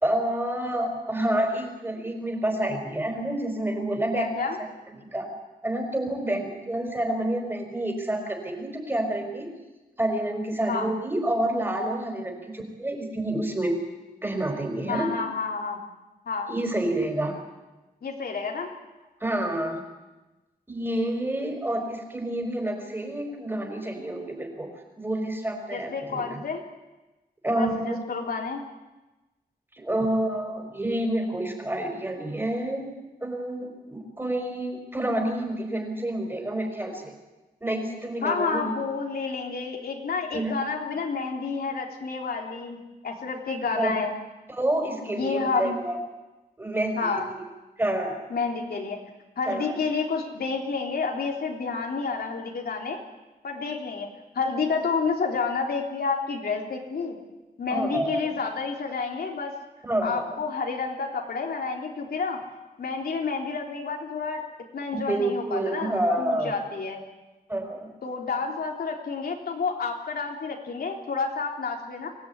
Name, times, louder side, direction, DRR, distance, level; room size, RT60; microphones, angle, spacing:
voice 1, 0.0-4.3 5.1-5.3 5.6-9.5 10.0-13.7 14.2-15.1 16.5-17.3 19.2-19.8 20.7-24.7 25.0-26.4 27.4-28.0 29.7-32.9 33.2-37.1 37.6-38.8 40.3-40.6 43.7-43.9 44.5-46.0 46.6-47.4 47.8-48.2 49.5-49.8 57.7-58.3 59.8-60.4 64.9-66.5 67.5-67.9, right 1 dB, 15° right, 3 dB, 5.1 m, -28 dB
voice 2, 4.1-4.6 10.7-10.9 14.9-15.8 16.3-16.5 18.0-18.7 25.7-26.6 27.5-28.6 38.2-44.2 45.1-45.8 47.0-47.3 48.3-49.0 49.4-53.0 53.4-54.1 54.3-57.2 57.6-59.6 60.0-62.4 62.8-64.5 64.7-65.9 66.2-67.0 68.0-72.1, left 4 dB, 80° left, 1 dB, 3.6 m, -29 dB
24.5 x 17.5 x 9.8 m, 1.1 s
wide cardioid pair, 155°, 16 cm